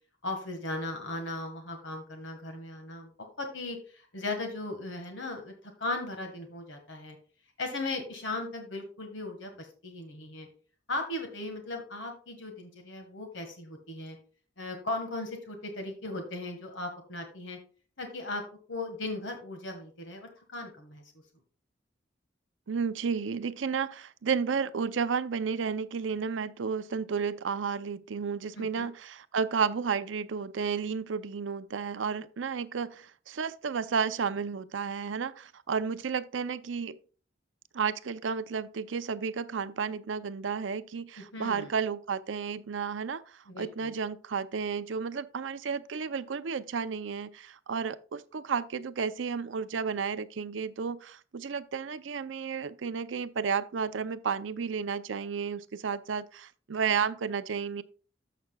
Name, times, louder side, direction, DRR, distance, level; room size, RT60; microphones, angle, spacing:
voice 1, 0.2-3.1 3.4-7.2 7.6-10.5 10.9-14.2 14.6-17.6 18.0-18.4 18.7-21.0 28.5-28.9 41.2-41.7 43.5-43.9, left 2 dB, 75° left, 1.6 m, -37 dB
voice 2, 22.7-37.0 37.7-57.8, right 6 dB, 85° right, 0.5 m, -32 dB
14.0 x 5.9 x 2.3 m
head